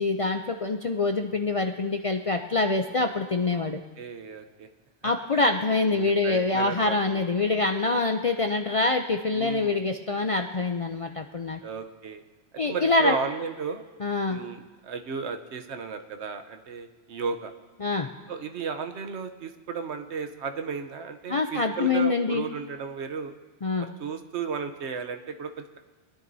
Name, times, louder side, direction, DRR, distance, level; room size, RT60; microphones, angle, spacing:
voice 1, 0.0-3.8 5.0-11.6 12.6-13.1 14.0-14.4 17.8-18.1 21.3-22.4 23.6-23.9, left 3 dB, 55° left, 5 dB, 0.3 m, -25 dB
voice 2, 4.0-4.7 5.3-5.4 5.8-7.3 9.3-9.8 11.6-12.2 12.6-13.9 14.3-17.5 18.3-23.3 23.8-25.8, right 5 dB, 70° right, 7 dB, 1.1 m, -34 dB
22.0 x 10.5 x 2.7 m, 1.3 s
omnidirectional pair, 1.2 m